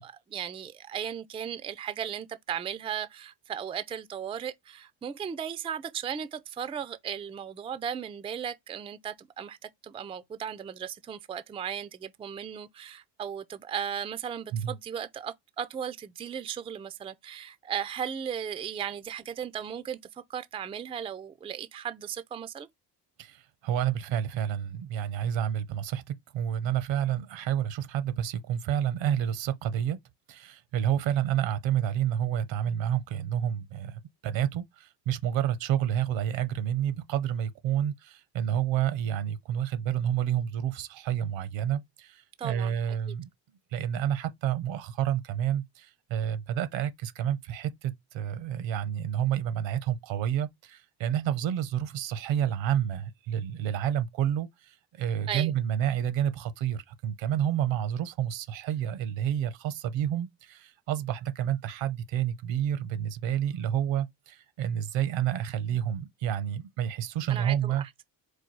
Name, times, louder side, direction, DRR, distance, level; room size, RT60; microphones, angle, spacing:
voice 1, 0.0-22.7 42.4-42.8 43.1-43.2 55.3-55.5 67.3-67.9, right 8 dB, 15° right, 0.3 m, -36 dB
voice 2, 23.2-30.0 30.3-43.3 43.7-67.8, right 10 dB, 80° right, 0.9 m, -29 dB
4.6 x 2.3 x 4.5 m
supercardioid pair, 85°, 44 cm